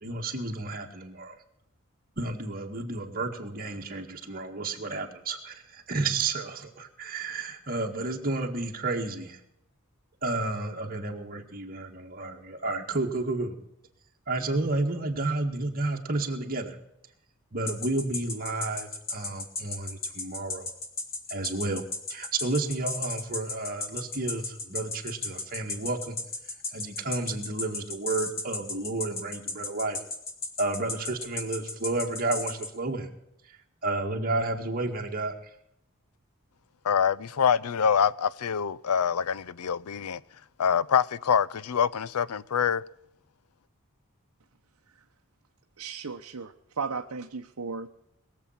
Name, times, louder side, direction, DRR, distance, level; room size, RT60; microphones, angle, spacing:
voice 1, 0.0-1.4 2.2-9.4 10.2-13.6 14.3-16.8 17.5-20.7 21.3-21.8 22.1-26.2 26.7-30.0 30.6-33.1 33.8-35.3, right 2 dB, 40° right, 1.9 m, -31 dB
sound 1, 17.7-32.7, left 3 dB, 45° left, 2.5 m, -33 dB
voice 2, 36.8-40.2 40.6-42.8, left 7 dB, 85° left, 0.5 m, -25 dB
voice 3, 45.8-47.9, right 5 dB, 80° right, 0.8 m, -35 dB
21.0 x 7.6 x 5.8 m
head